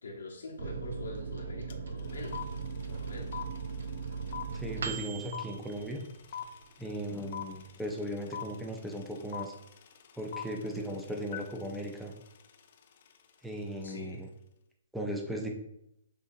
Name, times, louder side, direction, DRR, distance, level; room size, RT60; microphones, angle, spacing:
voice 1, 0.0-2.4 2.9-3.4 13.8-14.2, left 2 dB, 85° left, -1 dB, 1.2 m, -44 dB
Microwave oven, 0.6-6.7 7.1-7.2 7.4-8.1, right 5 dB, 70° right, 0.5 m, -39 dB
sound 1, 1.7-1.8 2.0-13.2, left 9 dB, 50° left, 0.4 m, -43 dB
voice 2, 4.5-6.0 6.8-9.5 10.2-12.1 13.4-14.3 14.9-15.5, equal, 5° right, 1 dB, 0.6 m, -37 dB
6.5 x 2.8 x 2.6 m, 0.78 s
hypercardioid pair, 145°, 0 cm